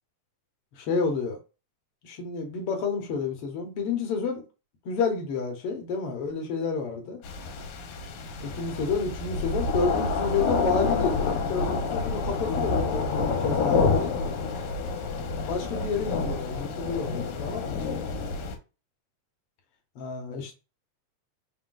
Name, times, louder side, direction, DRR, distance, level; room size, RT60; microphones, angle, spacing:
voice 1, 0.7-1.4 2.0-4.4 4.8-7.2 8.4-14.1 15.5-17.9 19.9-20.5, left 5 dB, 65° left, 1.6 m, -30 dB
sound 1, 7.2-18.6, left 4 dB, 80° left, 2.2 m, -28 dB
4.9 x 2.2 x 3.8 m
omnidirectional pair, 3.5 m